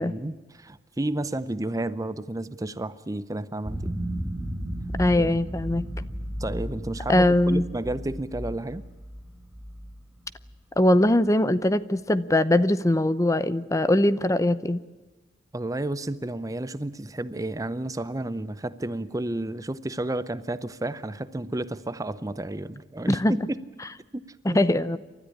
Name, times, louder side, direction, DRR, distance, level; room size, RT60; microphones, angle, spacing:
voice 1, 0.0-4.0 5.1-5.4 6.4-8.8 15.5-23.6 24.1-24.2 24.5-24.6, right 1 dB, 20° right, 15 dB, 0.7 m, -31 dB
sound 1, 3.6-10.8, equal, ahead, 4.3 m, -34 dB
voice 2, 5.0-5.9 7.1-7.6 10.8-14.8 23.1-23.3 24.4-25.0, left 1 dB, 20° left, 15 dB, 0.7 m, -21 dB
29.0 x 13.5 x 10.0 m, 1.2 s
head